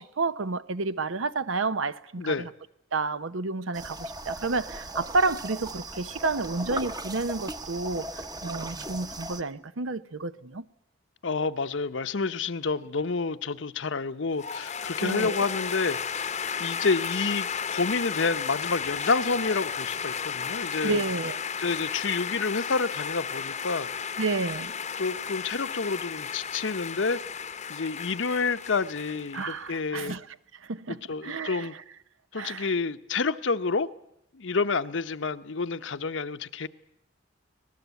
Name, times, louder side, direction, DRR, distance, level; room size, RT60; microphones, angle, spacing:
voice 1, 0.0-2.5 2.9-10.7 15.0-15.4 20.8-21.4 24.2-24.7 29.3-30.3 30.6-31.7 32.3-32.7, right 3 dB, 85° right, 0.8 m, -30 dB
sound 1, 3.7-9.4, right 1 dB, 20° right, 0.9 m, -37 dB
voice 2, 11.2-16.0 16.6-21.0 21.6-23.9 25.0-27.2 27.7-30.1 30.9-31.7 32.3-33.9 34.3-36.7, left 4 dB, 65° left, 0.8 m, -29 dB
sound 2, 14.4-29.9, left 7 dB, 35° left, 0.8 m, -34 dB
25.0 x 18.5 x 8.2 m
head